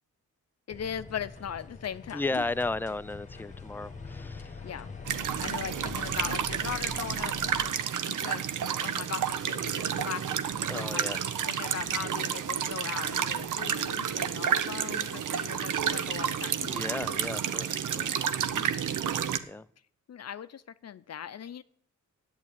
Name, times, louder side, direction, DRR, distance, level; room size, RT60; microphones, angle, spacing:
voice 1, 0.7-2.5 4.6-4.9 5.4-7.4 7.8-10.5 10.7-11.1 11.5-17.1 18.5-18.8 20.1-21.6, left 8 dB, 55° left, 14 dB, 0.6 m, -39 dB
sound 1, 0.7-7.7, left 4 dB, 25° left, 1.5 m, -44 dB
voice 2, 2.1-4.6 10.7-11.2 16.7-18.3 19.5-19.7, left 2 dB, 5° left, 15 dB, 0.4 m, -34 dB
sound 2, 5.1-19.4, right 8 dB, 75° right, 0.8 m, -30 dB
8.7 x 8.3 x 8.9 m, 0.63 s
cardioid pair, 75°, 31 cm